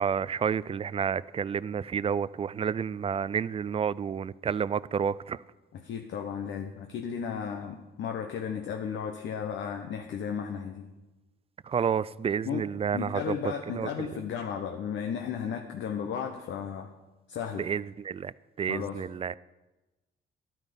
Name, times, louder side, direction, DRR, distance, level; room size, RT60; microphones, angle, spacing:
voice 1, 0.0-5.4 11.7-13.3 13.7-13.9 17.6-18.3 18.6-19.4, right 7 dB, 30° right, 0.3 m, -30 dB
voice 2, 5.7-10.9 12.4-12.6 12.9-16.9 17.3-17.7 18.7-19.0, left 7 dB, 70° left, 1.0 m, -34 dB
12.0 x 9.1 x 5.3 m
cardioid pair, 90°, 20 cm